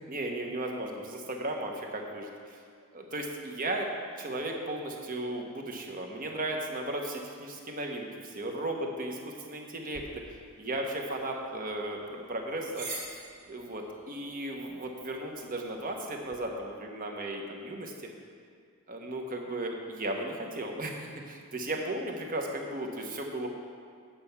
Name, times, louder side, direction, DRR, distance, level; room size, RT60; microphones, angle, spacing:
voice 1, 0.1-2.6 2.9-3.9 4.2-10.1 10.6-12.9 13.5-17.9 18.9-23.5, right 1 dB, 40° right, 2 dB, 1.1 m, -35 dB
sound 1, 9.9-16.4, right 3 dB, 80° right, 2.2 m, -48 dB
8.7 x 5.6 x 7.1 m, 2.1 s
head